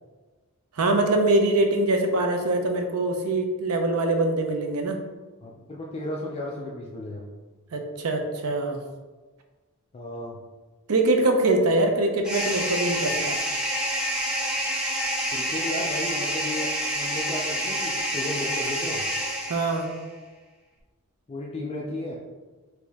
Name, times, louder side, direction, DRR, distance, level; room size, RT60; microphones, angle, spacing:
voice 1, 0.8-5.0 7.7-8.8 10.9-13.4 19.5-19.9, right 2 dB, 75° right, 4 dB, 0.6 m, -23 dB
voice 2, 5.4-7.3 9.9-10.4 15.3-19.1 21.3-22.2, left 1 dB, 25° left, -2 dB, 0.4 m, -34 dB
sound 1, 12.2-20.0, equal, 5° right, 0.7 m, -28 dB
4.3 x 2.8 x 3.4 m, 1.3 s
head